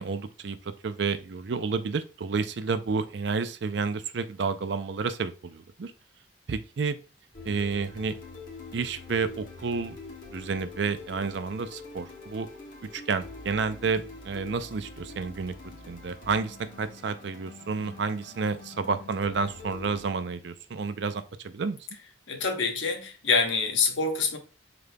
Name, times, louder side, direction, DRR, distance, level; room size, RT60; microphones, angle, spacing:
voice 1, 0.0-5.9 6.5-7.0 7.4-8.1 8.7-10.0 10.3-12.5 12.9-15.5 15.9-21.8, right 4 dB, 65° right, 0.5 m, -30 dB
sound 1, 7.3-20.1, left 3 dB, 45° left, 1.3 m, -45 dB
voice 2, 22.3-24.4, left 4 dB, 80° left, 1.0 m, -26 dB
5.1 x 3.9 x 2.2 m
head